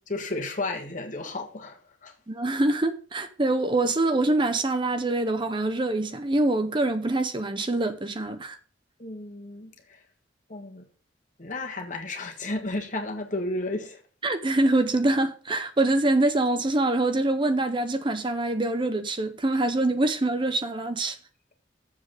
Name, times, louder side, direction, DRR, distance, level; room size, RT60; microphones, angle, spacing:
voice 1, 0.1-2.1 9.0-9.7 10.5-10.8 11.4-14.0, left 2 dB, 40° left, 1.7 m, -33 dB
voice 2, 2.3-8.6 14.2-21.2, right 2 dB, 25° right, 0.7 m, -25 dB
7.4 x 6.9 x 6.6 m
head